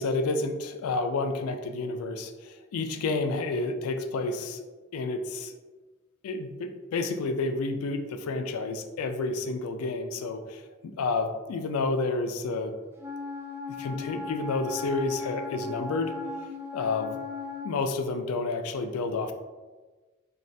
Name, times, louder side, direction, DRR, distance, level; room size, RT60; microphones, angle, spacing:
voice 1, 0.0-4.6 4.9-5.6 6.2-12.7 13.8-16.1 16.7-17.2 17.6-19.3, left 3 dB, 90° left, 7 dB, 0.3 m, -30 dB
Wind instrument woodwind instrument, 13.0-17.8, left 3 dB, 10° right, 0.4 m, -37 dB
3.2 x 2.3 x 2.6 m, 1.3 s
head